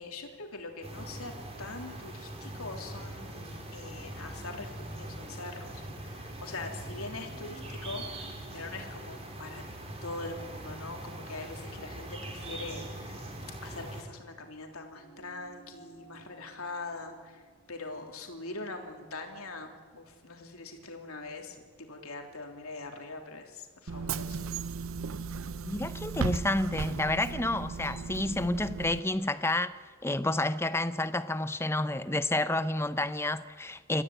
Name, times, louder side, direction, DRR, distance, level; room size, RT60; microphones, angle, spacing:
voice 1, 0.0-1.3 1.6-5.7 6.0-9.6 10.0-13.3 13.6-17.4 17.7-24.5, left 3 dB, 80° left, 3.3 m, -42 dB
sound 1, 0.8-14.0, right 1 dB, 25° right, 3.4 m, -42 dB
sound 2, 14.9-19.7, right 6 dB, 35° left, 3.1 m, -58 dB
Bus / Engine, 23.9-29.0, right 5 dB, 65° right, 0.6 m, -36 dB
voice 2, 25.6-34.0, left 2 dB, 10° left, 0.6 m, -30 dB
27.5 x 14.5 x 9.1 m
head